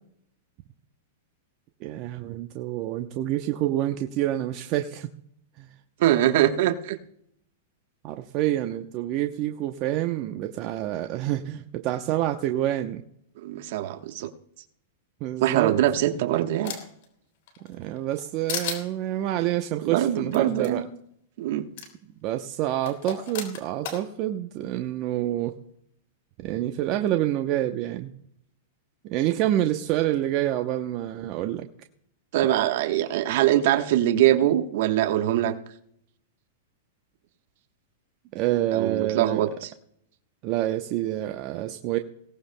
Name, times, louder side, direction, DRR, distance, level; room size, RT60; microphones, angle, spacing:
voice 1, 1.8-5.1 5.6-5.7 8.0-13.0 15.2-15.7 17.7-20.8 22.2-25.6 26.4-28.1 29.0-31.7 38.3-39.4 40.4-42.0, right 13 dB, 45° right, 6 dB, 0.8 m, -27 dB
voice 2, 6.0-7.0 13.4-14.3 15.4-16.8 19.8-20.9 21.4-21.7 32.3-35.5 38.7-39.7, right 12 dB, 60° right, 7 dB, 1.1 m, -23 dB
sound 1, 15.7-17.0 17.5-18.2 18.5-18.8 20.3-20.4 20.6-20.7 21.8-21.9 22.9-24.0, left 7 dB, 65° left, 3.3 m, -34 dB
22.0 x 17.0 x 2.2 m, 0.71 s
hypercardioid pair, 120°, 0 cm